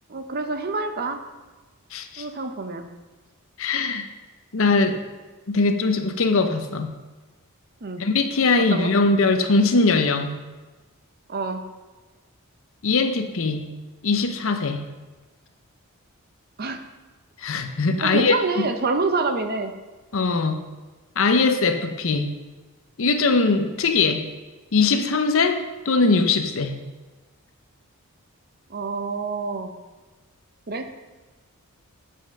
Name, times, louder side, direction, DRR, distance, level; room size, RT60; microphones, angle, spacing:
voice 1, 0.1-1.2 2.2-2.9 7.8-8.1 8.7-8.9 11.3-11.7 16.6-16.8 18.0-19.7 28.7-29.8 30.7-30.9, right 3 dB, 45° right, 7 dB, 0.7 m, -27 dB
voice 2, 1.9-2.3 3.6-4.0 4.5-5.0 5.5-6.9 8.0-10.4 12.8-13.7 14.0-14.8 17.4-18.4 20.1-20.6 21.2-22.3 23.0-24.2 24.7-26.8, left 3 dB, 60° left, 7 dB, 0.7 m, -21 dB
7.6 x 5.5 x 6.5 m, 1.2 s
head